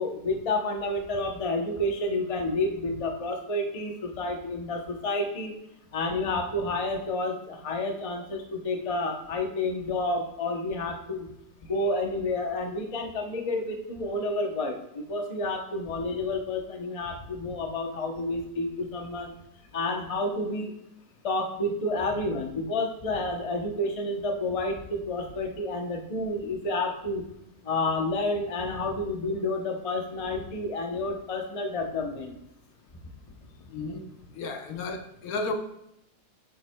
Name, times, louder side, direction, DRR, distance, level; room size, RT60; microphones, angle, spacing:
voice 1, 0.0-5.6 5.9-11.3 11.7-19.3 19.7-20.7 21.2-27.2 27.6-32.4, left 2 dB, 35° left, 2 dB, 0.6 m, -30 dB
voice 2, 33.7-34.0 34.3-35.5, left 3 dB, 70° left, 6 dB, 1.1 m, -33 dB
8.8 x 7.2 x 2.2 m, 0.83 s
omnidirectional pair, 1.7 m